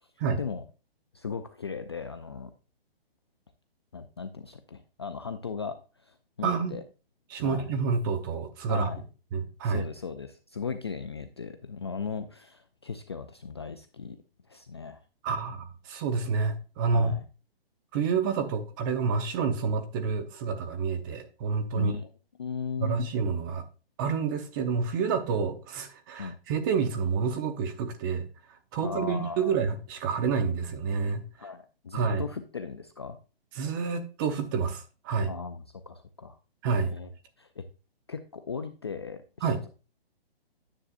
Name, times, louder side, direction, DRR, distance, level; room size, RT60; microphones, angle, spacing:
voice 1, 1.1-2.5 3.9-6.8 7.4-7.7 8.7-9.0 9.6-14.2 14.5-15.0 16.9-17.2 21.7-22.1 22.4-23.0 26.2-26.4 28.8-29.6 31.4-33.2 35.3-36.4 36.9-37.1 37.4-37.7 38.1-39.7, left 5 dB, 25° left, 0.3 m, -37 dB
voice 2, 6.4-6.8 7.3-8.9 9.3-9.8 15.2-17.1 17.9-21.9 22.8-23.6 24.0-31.3 31.9-32.2 33.6-35.3 36.6-36.9 39.4-39.6, right 5 dB, 20° right, 0.8 m, -28 dB
9.9 x 7.3 x 2.4 m
hypercardioid pair, 155°, 31 cm